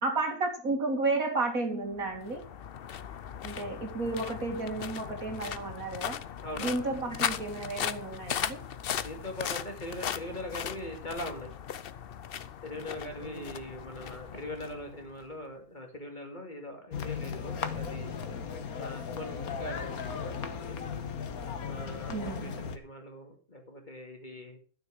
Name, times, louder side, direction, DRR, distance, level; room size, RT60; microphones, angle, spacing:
voice 1, 0.0-2.4 3.4-6.2 6.6-8.6 13.2-13.5 22.1-22.6, right 3 dB, 65° right, 3 dB, 2.9 m, -32 dB
sound 1, 1.9-15.3, left 9 dB, 55° left, 0.7 m, -38 dB
voice 2, 6.4-6.9 9.0-11.5 12.6-18.1 18.8-20.8 21.7-24.6, left 1 dB, 30° left, 3 dB, 2.4 m, -41 dB
sound 2, 16.9-22.8, left 6 dB, 75° left, 1.6 m, -36 dB
12.5 x 6.7 x 6.2 m, 0.41 s
omnidirectional pair, 1.6 m